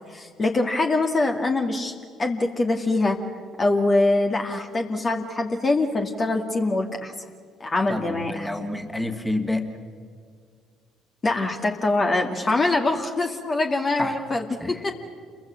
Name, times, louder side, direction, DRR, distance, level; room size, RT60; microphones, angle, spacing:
voice 1, 0.1-3.2 3.6-7.1 7.6-8.5 11.2-14.9, left 2 dB, 35° left, 3 dB, 2.1 m, -24 dB
voice 2, 7.9-9.6 14.0-14.2 14.6-14.8, left 1 dB, 10° left, 5 dB, 2.5 m, -28 dB
29.5 x 23.0 x 6.4 m, 2.1 s
figure-of-eight pair, 50°, 0 cm